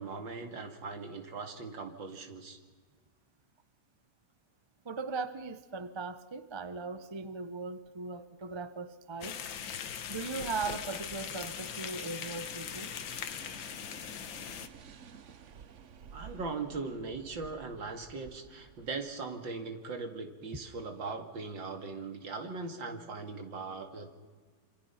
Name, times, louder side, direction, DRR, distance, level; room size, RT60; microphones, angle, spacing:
voice 1, 0.0-2.6 16.1-24.1, right 4 dB, 80° right, 2.9 m, -40 dB
voice 2, 4.8-9.4 10.1-12.9, right 4 dB, 25° right, 0.6 m, -39 dB
sound 1, 9.2-14.7, left 8 dB, 80° left, 1.8 m, -40 dB
sound 2, 10.0-18.9, right 7 dB, 50° right, 1.1 m, -53 dB
26.5 x 26.0 x 5.8 m
omnidirectional pair, 2.0 m